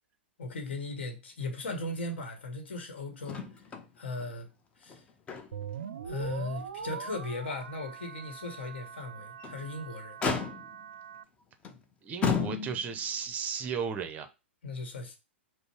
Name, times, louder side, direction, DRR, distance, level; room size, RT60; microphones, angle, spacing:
voice 1, 0.4-3.7 4.0-4.5 4.8-5.0 6.0-10.2 14.6-15.2, left 2 dB, 65° left, 1.0 m, -37 dB
Motor vehicle (road), 3.3-3.9 4.2-4.3 4.8-5.8 6.2-6.3 6.9-7.0 9.2-9.6 10.2-10.9 11.6-11.8 12.2-13.0 14.1-14.2, left 5 dB, 20° left, 0.6 m, -33 dB
sound 1, 5.5-11.2, right 7 dB, 65° right, 0.4 m, -42 dB
voice 2, 12.0-14.3, right 6 dB, 25° right, 0.6 m, -34 dB
5.2 x 2.0 x 4.3 m
figure-of-eight pair, 105°, 6 cm